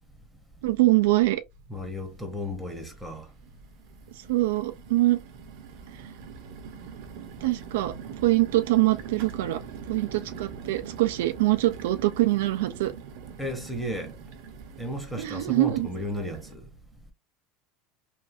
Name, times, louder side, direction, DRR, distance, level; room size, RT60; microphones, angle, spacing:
voice 1, 0.6-1.4 4.2-5.2 5.9-6.0 7.4-7.9 8.2-9.6 9.9-12.9 15.2-15.9, right 17 dB, 85° right, 0.4 m, -24 dB
sound 1, 1.5-1.6 2.1-2.7 3.4-16.5, right 6 dB, 65° right, 0.8 m, -43 dB
voice 2, 1.7-3.3 13.4-14.2 14.8-16.6, equal, ahead, 1.1 m, -34 dB
3.2 x 2.6 x 2.5 m
supercardioid pair, 120°, 0 cm